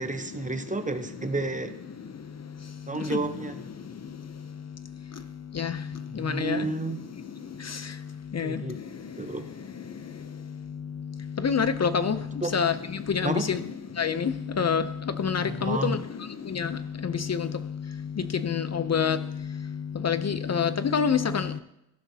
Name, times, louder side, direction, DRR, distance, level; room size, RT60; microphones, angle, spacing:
voice 1, 0.0-1.7 2.9-3.6 6.1-7.0 8.4-8.8 9.2-9.5 12.4-12.6 13.2-13.5 15.4-16.0, right 3 dB, 20° right, 0.8 m, -31 dB
voice 2, 6.2-6.6 8.4-8.6 11.4-12.2 12.5-12.7 13.1-13.6 14.0-14.3 14.6-14.8 15.2-16.0 16.6-16.7 17.3-17.5 18.4-19.2 20.0-21.4, left 6 dB, 45° left, 0.5 m, -25 dB
15.0 x 12.0 x 2.8 m
wide cardioid pair, 115°, 38 cm